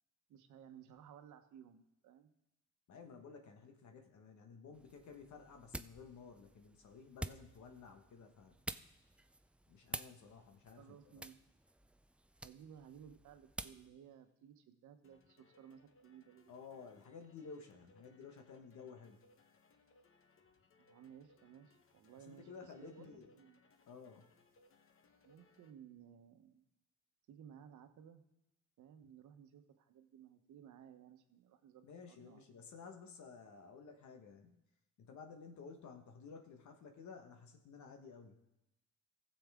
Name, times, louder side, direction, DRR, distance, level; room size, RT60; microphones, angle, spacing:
voice 1, 0.3-2.3 10.8-11.4 12.4-16.5 20.8-23.6 25.2-26.6 27.3-28.2 28.8-32.4, right 8 dB, 75° right, 8 dB, 1.0 m, -58 dB
voice 2, 2.9-8.6 9.7-11.3 16.5-19.2 22.2-23.3 23.9-24.3 29.0-29.1 31.8-34.6 35.0-38.4, left 5 dB, 70° left, 5 dB, 1.3 m, -54 dB
sound 1, 4.7-13.9, right 1 dB, 5° right, 0.3 m, -50 dB
sound 2, 15.0-25.7, left 3 dB, 45° left, 1.0 m, -70 dB
15.5 x 7.1 x 3.6 m, 0.92 s
cardioid pair, 90°, 30 cm